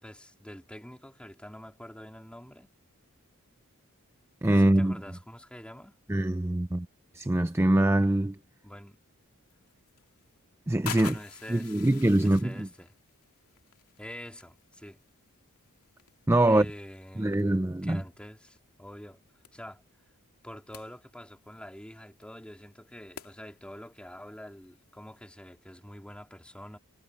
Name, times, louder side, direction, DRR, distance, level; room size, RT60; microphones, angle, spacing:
voice 1, 0.0-2.7 4.5-6.0 8.6-9.0 10.9-11.8 12.2-12.9 14.0-15.0 16.5-19.2 19.5-19.8 20.4-26.8, equal, 5° left, 3.6 m, -46 dB
voice 2, 4.4-5.0 6.1-6.9 7.1-8.4 10.7-11.1 11.5-12.7 16.3-16.7 17.2-18.0, right 1 dB, 10° right, 0.5 m, -24 dB
sound 1, 9.5-25.3, left 8 dB, 80° left, 2.3 m, -49 dB
head